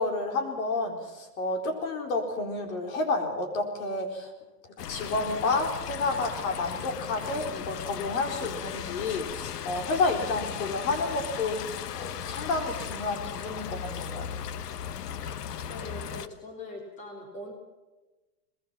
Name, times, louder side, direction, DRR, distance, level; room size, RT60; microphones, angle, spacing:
voice 1, 0.0-4.3 4.9-11.6 11.9-14.3, left 3 dB, 55° left, 5 dB, 4.5 m, -30 dB
sound 1, 4.8-16.3, left 9 dB, 70° left, 1.3 m, -37 dB
voice 2, 15.7-17.5, left 1 dB, 15° left, 1 dB, 3.4 m, -42 dB
23.5 x 20.5 x 5.9 m, 1.1 s
supercardioid pair, 170°, 48 cm